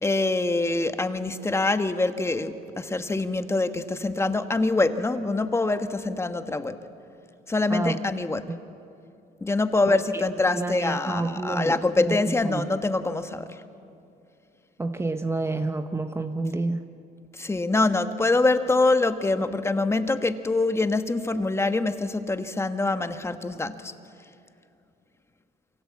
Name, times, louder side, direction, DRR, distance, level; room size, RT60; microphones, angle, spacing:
voice 1, 0.0-6.8 7.5-8.5 9.4-13.6 17.3-23.9, left 2 dB, 15° left, 9 dB, 1.3 m, -25 dB
voice 2, 9.9-10.2 10.5-12.7 14.8-16.9, right 2 dB, 15° right, 8 dB, 1.0 m, -29 dB
29.0 x 23.5 x 8.4 m, 2.6 s
cardioid pair, 110°, 17 cm